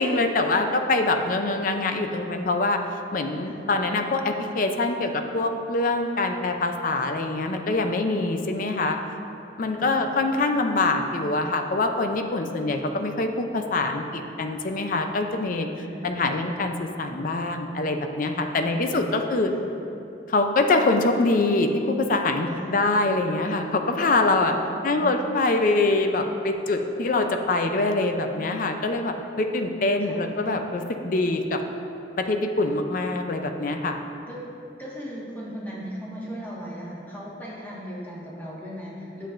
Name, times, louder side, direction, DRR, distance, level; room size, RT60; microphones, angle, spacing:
voice 1, 0.0-2.8 3.1-9.0 9.6-15.7 16.0-19.5 20.3-24.6 24.8-31.6 32.2-34.0, left 2 dB, 50° left, 5 dB, 0.5 m, -24 dB
voice 2, 15.7-16.1 18.5-19.6 22.5-22.7 24.5-25.1 30.0-30.3 33.8-33.9 34.3-34.4 34.8-39.3, equal, 10° left, -6 dB, 1.5 m, -38 dB
9.9 x 7.2 x 2.5 m, 2.8 s
head